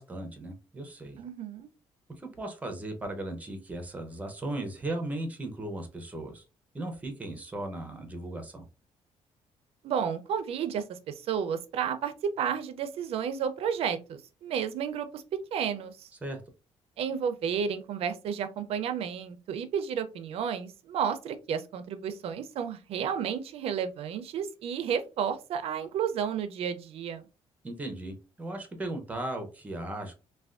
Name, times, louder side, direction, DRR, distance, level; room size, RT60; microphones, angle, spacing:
voice 1, 0.0-1.2 2.2-6.4 6.7-8.6 16.2-16.4 27.6-30.1, right 1 dB, 15° right, 5 dB, 0.6 m, -37 dB
voice 2, 1.2-1.7 9.8-15.2 15.5-16.1 17.0-27.2, right 7 dB, 65° right, 10 dB, 0.4 m, -32 dB
3.3 x 2.2 x 2.4 m, 0.31 s
cardioid pair, 160°, 11 cm